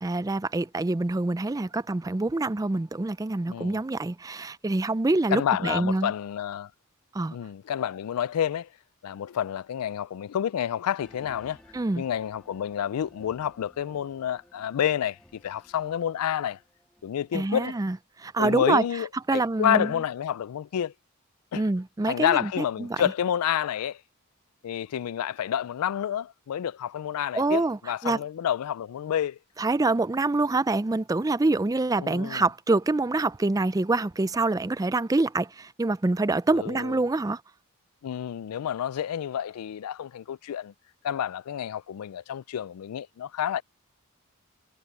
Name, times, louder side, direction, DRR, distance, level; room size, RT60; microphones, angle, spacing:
voice 1, 0.0-6.1 7.1-7.4 11.7-12.0 17.3-18.8 19.3-19.9 21.6-23.0 27.3-27.8 28.0-28.2 29.6-37.4, right 2 dB, 15° right, 0.3 m, -26 dB
voice 2, 3.5-3.8 5.3-6.7 7.3-8.7 9.0-11.6 12.0-16.6 17.0-17.8 18.4-20.9 21.5-21.6 22.0-24.0 24.6-29.4 32.0-32.4 36.5-37.0 38.0-40.7 41.0-43.6, left 9 dB, 85° left, 0.3 m, -29 dB
sound 1, 11.0-17.6, equal, 5° left, 2.4 m, -57 dB
head